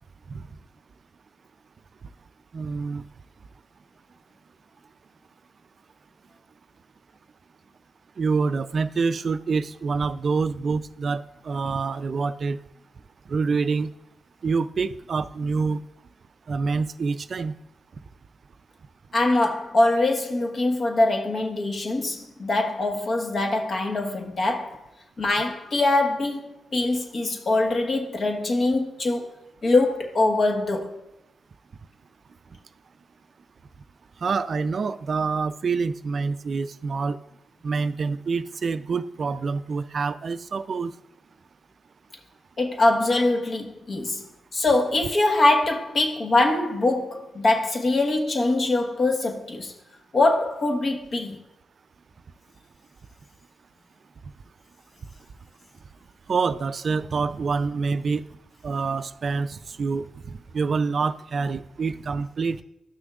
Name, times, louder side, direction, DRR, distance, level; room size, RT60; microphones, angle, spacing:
voice 1, 2.5-3.0 8.2-12.6 13.3-13.9 14.4-15.8 16.5-17.5 34.2-37.2 37.6-40.9 56.3-58.2 58.6-62.6, right 4 dB, 60° right, 0.3 m, -26 dB
voice 2, 19.1-24.8 25.2-29.3 29.6-31.0 42.6-44.2 44.5-49.7 50.1-51.4, left 2 dB, 55° left, 1.2 m, -23 dB
12.5 x 6.2 x 2.4 m
supercardioid pair, 45°, 0 cm